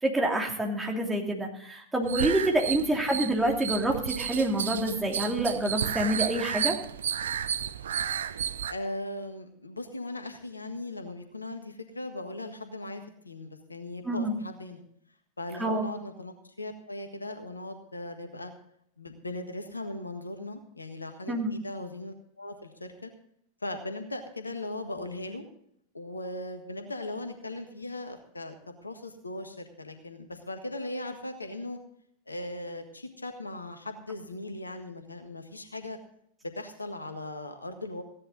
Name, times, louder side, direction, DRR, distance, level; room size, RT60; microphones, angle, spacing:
voice 1, 0.0-6.7 14.0-14.3 15.6-15.8 21.3-21.5, right 1 dB, 10° right, 0 dB, 2.7 m, -27 dB
sound 1, 2.0-8.7, right 8 dB, 65° right, 0.6 m, -32 dB
voice 2, 2.7-3.0 8.7-14.8 15.4-18.5 19.0-23.1 23.6-25.4 25.9-31.8 32.3-36.0 36.5-38.0, left 2 dB, 80° left, 7 dB, 1.6 m, -38 dB
16.0 x 10.5 x 3.9 m, 0.70 s
figure-of-eight pair, 90°, 0 cm